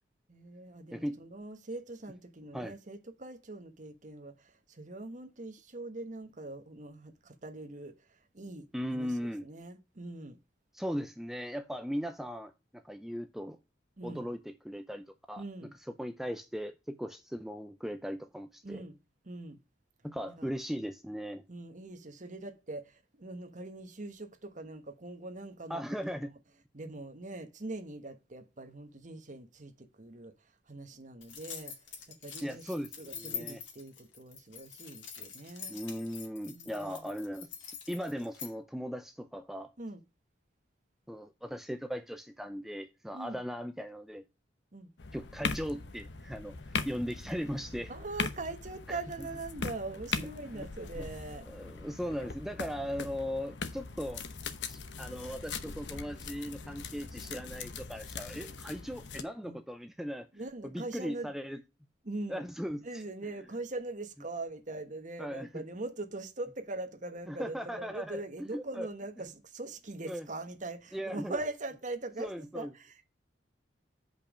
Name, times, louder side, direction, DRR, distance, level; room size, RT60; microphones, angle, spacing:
voice 1, 0.3-7.9 8.3-8.7 8.9-10.4 14.0-14.3 15.4-15.7 18.6-19.0 19.3-19.6 20.4-20.5 21.5-25.8 26.1-26.3 26.7-30.3 30.7-31.7 32.1-35.8 36.5-37.0 39.8-40.0 43.1-43.4 44.7-44.9 47.9-51.5 59.4-59.6 60.3-61.3 62.0-62.4 62.8-73.1, right 2 dB, 45° right, 1.2 m, -42 dB
voice 2, 8.7-9.5 10.7-13.6 14.0-18.8 20.0-21.4 25.7-26.3 32.4-33.6 35.7-37.5 37.9-39.7 41.1-44.2 45.1-47.9 48.9-49.3 50.1-50.7 51.0-51.1 51.5-54.2 54.7-60.3 60.6-61.6 62.3-63.0 65.2-65.6 67.3-68.2 68.5-68.9 70.1-70.3 70.9-71.4 72.2-72.7, equal, ahead, 0.5 m, -38 dB
sound 1, 31.2-38.5, left 7 dB, 90° left, 2.3 m, -45 dB
sound 2, 45.0-59.2, left 5 dB, 70° left, 0.9 m, -40 dB
7.0 x 5.4 x 5.1 m
head